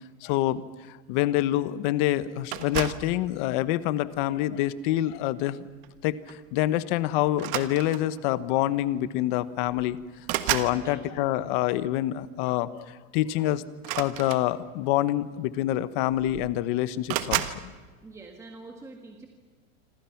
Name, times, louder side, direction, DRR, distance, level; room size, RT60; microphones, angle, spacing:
voice 1, 0.2-0.6 0.9-5.7 6.0-10.0 10.5-12.9 13.1-13.6 14.0-17.7, left 14 dB, 40° left, 14 dB, 1.1 m, -26 dB
sound 1, 2.5-3.1 4.0-4.3 5.8-6.0 6.3-6.5 7.3-8.2 9.2-9.3 9.6-10.8 13.8-14.9 15.8-15.9 16.1-16.6 17.1-17.6, right 14 dB, 40° right, 1.5 m, -31 dB
voice 2, 10.7-11.0 18.0-19.3, right 3 dB, 5° right, 2 dB, 1.7 m, -45 dB
27.0 x 27.0 x 5.9 m, 1.4 s
supercardioid pair, 170°, 39 cm